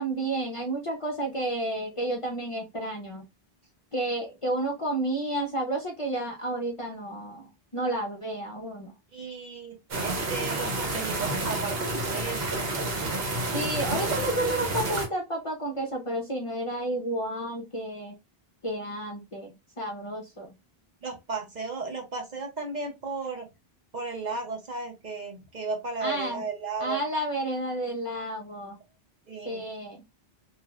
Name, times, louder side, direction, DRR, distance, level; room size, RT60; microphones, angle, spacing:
voice 1, 0.0-3.3 3.9-8.9 13.5-18.2 18.6-20.5 26.0-26.4 26.8-28.8 29.4-30.0, right 1 dB, 40° left, 0.5 m, -31 dB
voice 2, 9.1-12.7 21.0-23.4 23.9-27.0 29.3-29.6, right 4 dB, 50° right, 0.8 m, -35 dB
sound 1, 9.9-15.1, right 2 dB, 70° right, 1.0 m, -29 dB
3.0 x 2.4 x 2.3 m
omnidirectional pair, 1.0 m